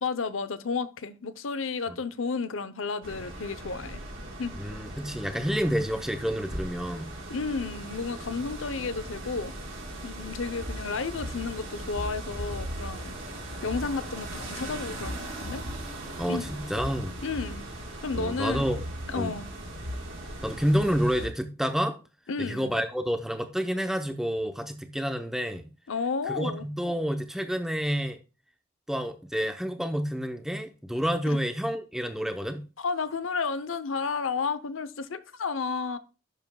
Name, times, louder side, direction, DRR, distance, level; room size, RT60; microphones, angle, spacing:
voice 1, 0.0-4.0 4.4-4.6 7.3-9.5 10.0-13.1 13.6-15.6 16.3-16.5 17.2-17.6 18.0-18.7 19.1-19.5 22.3-22.7 25.9-26.7 31.3-31.4 32.8-36.0, left 4 dB, 80° left, 0.7 m, -32 dB
sound 1, 3.0-21.3, right 1 dB, 85° right, 4.3 m, -38 dB
voice 2, 4.6-7.1 16.2-17.1 18.1-18.8 19.2-19.3 20.4-22.0 22.4-25.7 26.3-28.2 28.9-32.6, equal, ahead, 0.7 m, -29 dB
11.0 x 7.1 x 2.3 m
head